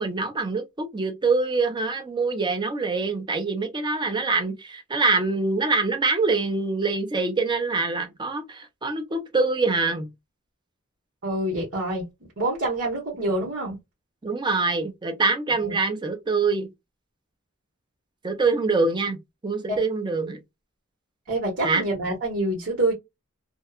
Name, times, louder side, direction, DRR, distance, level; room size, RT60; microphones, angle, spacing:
voice 1, 0.0-10.1 14.2-16.7 18.2-19.2 19.4-20.4 21.6-21.8, right 3 dB, 20° right, 0.5 m, -24 dB
voice 2, 11.2-12.0 12.4-13.8 15.6-15.7 19.7-19.8 21.3-22.9, right 1 dB, 60° right, 1.1 m, -26 dB
2.8 x 2.2 x 2.3 m
head